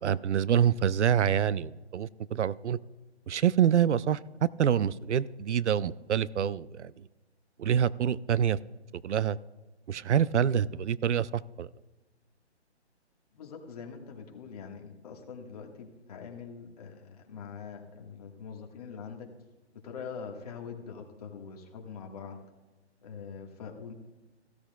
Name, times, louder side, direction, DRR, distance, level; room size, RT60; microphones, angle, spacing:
voice 1, 0.0-2.8 3.3-7.1 7.6-8.6 9.0-9.4 9.9-11.7, right 9 dB, 85° right, 20 dB, 0.5 m, -26 dB
voice 2, 13.3-19.3 19.8-22.4 23.0-23.9, left 6 dB, 35° left, 2 dB, 1.6 m, -43 dB
16.0 x 13.0 x 2.3 m, 1.2 s
hypercardioid pair, 155°, 34 cm